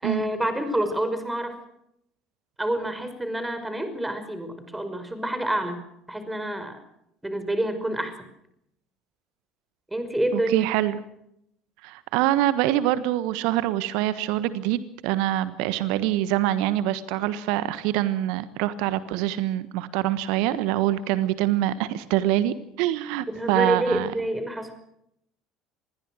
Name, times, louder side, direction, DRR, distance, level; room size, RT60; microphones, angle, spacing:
voice 1, 0.0-1.6 2.6-5.8 6.1-6.8 7.2-8.1 9.9-10.7 23.3-24.7, right 1 dB, 10° right, 9 dB, 5.5 m, -27 dB
voice 2, 10.3-11.0 11.8-24.1, right 14 dB, 65° right, 14 dB, 1.3 m, -25 dB
26.0 x 21.0 x 6.4 m, 0.77 s
figure-of-eight pair, 65°, 0 cm